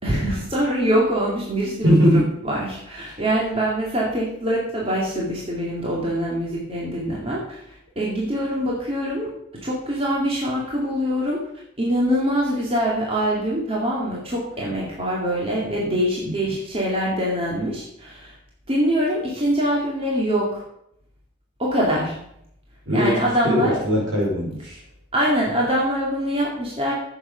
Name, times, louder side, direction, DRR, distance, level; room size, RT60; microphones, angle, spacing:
voice 1, 0.0-9.3 9.6-11.4 11.8-18.3 18.7-20.6 21.6-22.2 22.9-23.8 25.1-26.9, equal, 30° right, -4 dB, 2.4 m, -24 dB
voice 2, 1.8-2.3 16.2-16.5 22.9-24.8, equal, 70° right, -2 dB, 4.6 m, -21 dB
10.5 x 8.0 x 5.1 m, 0.73 s
head